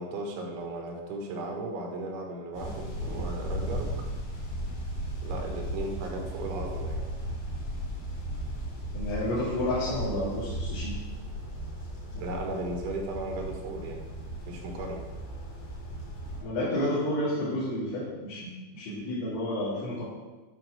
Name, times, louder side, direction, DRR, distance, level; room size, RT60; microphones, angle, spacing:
voice 1, 0.0-3.9 5.2-7.1 12.2-14.0 14.5-15.0, right 2 dB, 75° right, 1 dB, 3.9 m, -36 dB
sound 1, 2.5-16.4, equal, 65° left, 5.3 m, -36 dB
voice 2, 8.9-10.9 16.4-20.0, left 1 dB, 85° left, -10 dB, 5.1 m, -30 dB
11.5 x 4.5 x 6.4 m, 1.2 s
omnidirectional pair, 5.5 m